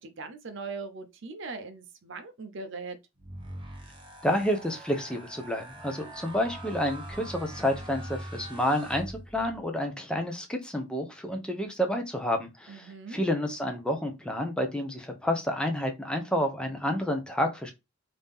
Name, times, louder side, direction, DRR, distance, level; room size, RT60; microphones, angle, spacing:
voice 1, 0.0-3.0 12.7-13.2, right 4 dB, 60° right, 0.6 m, -40 dB
sound 1, 3.2-9.6, right 1 dB, 25° right, 0.9 m, -42 dB
voice 2, 4.2-17.7, equal, 5° left, 0.7 m, -29 dB
3.4 x 2.8 x 3.5 m
head